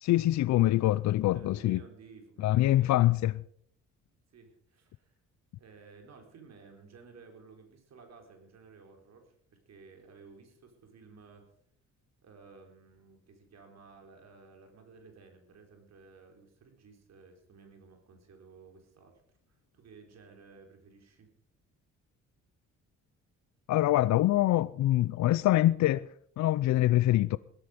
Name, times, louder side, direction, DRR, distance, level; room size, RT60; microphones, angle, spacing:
voice 1, 0.0-1.8 2.4-3.3 23.7-26.1 26.4-27.4, left 15 dB, 65° left, 0.5 m, -24 dB
voice 2, 1.3-3.2 4.3-5.2 5.5-11.5 12.2-19.2 19.5-21.3, right 4 dB, 60° right, 4.1 m, -55 dB
17.0 x 13.0 x 5.1 m
cardioid pair, 90°, 30 cm